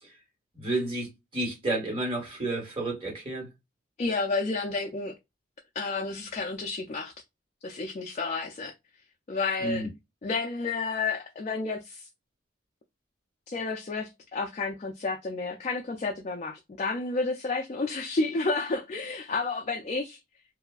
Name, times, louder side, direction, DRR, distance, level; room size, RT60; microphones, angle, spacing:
voice 1, 0.5-1.1 1.3-3.5 9.6-9.9, right 2 dB, 30° right, 1.2 m, -30 dB
voice 2, 4.0-5.1 5.8-7.1 7.6-8.7 9.3-9.9 10.2-12.1 13.5-20.2, left 3 dB, 35° left, 0.3 m, -31 dB
2.7 x 2.3 x 2.3 m
head